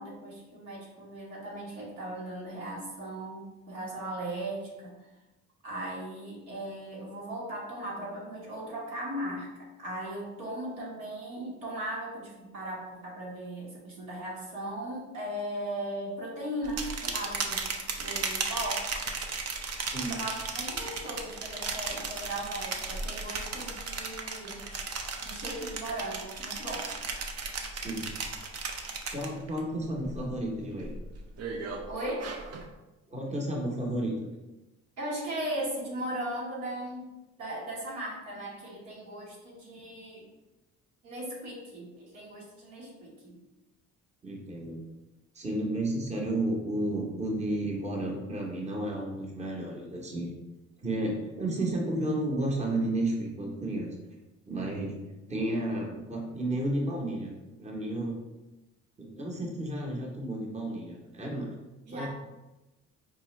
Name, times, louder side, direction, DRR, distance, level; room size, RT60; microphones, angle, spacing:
voice 1, 0.0-4.9 5.6-9.5 9.8-18.8 20.1-24.6 25.2-26.9 31.9-32.3 35.0-37.1 37.4-40.2 41.0-43.3 61.9-62.1, right 1 dB, 90° right, -5 dB, 1.5 m, -37 dB
sound 1, 16.6-29.6 30.0-30.4 30.8-32.7, right 4 dB, 55° right, 0.6 m, -35 dB
voice 2, 19.8-20.2 27.7-28.1 29.1-30.9 33.1-34.3 44.2-44.8 45.3-50.3 50.8-53.9 54.5-55.0 55.3-58.2 59.0-61.5 61.9-62.1, right 1 dB, 20° right, -1 dB, 0.8 m, -32 dB
4.7 x 2.4 x 3.1 m, 1.0 s
cardioid pair, 90°, 30 cm